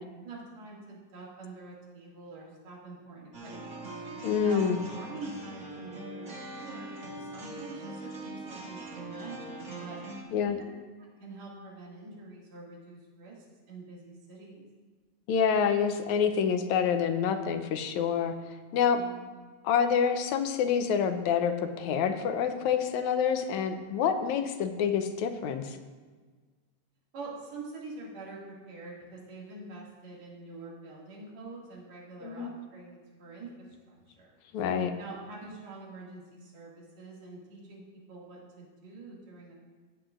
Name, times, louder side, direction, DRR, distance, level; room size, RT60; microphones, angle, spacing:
voice 1, 0.2-3.7 4.4-10.0 10.5-10.6 11.0-14.7 18.9-19.3 27.1-34.3 35.0-39.5, right 3 dB, 65° right, -5 dB, 3.5 m, -46 dB
sound 1, 3.3-10.2, right 2 dB, 35° right, 1.2 m, -41 dB
voice 2, 4.2-4.8 10.3-10.6 15.3-18.3 18.7-19.0 19.6-25.8 32.2-32.5 34.5-34.9, left 7 dB, 85° left, 7 dB, 2.1 m, -27 dB
15.5 x 9.8 x 2.5 m, 1.4 s
omnidirectional pair, 3.3 m